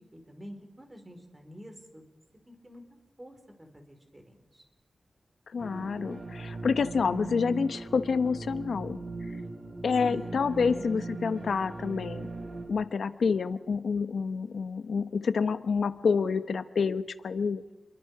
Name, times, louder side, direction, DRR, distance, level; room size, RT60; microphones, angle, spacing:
voice 1, 0.1-2.0 2.5-2.8 3.2-4.6 10.0-10.4 10.7-11.4, equal, 20° right, 4 dB, 5.1 m, -47 dB
voice 2, 5.5-9.0 9.8-12.3 12.7-17.6, left 5 dB, 90° left, 11 dB, 1.1 m, -28 dB
sound 1, 5.6-12.7, right 2 dB, 75° right, 6.2 m, -39 dB
29.5 x 23.5 x 5.0 m, 1.2 s
wide cardioid pair, 80°, 0 cm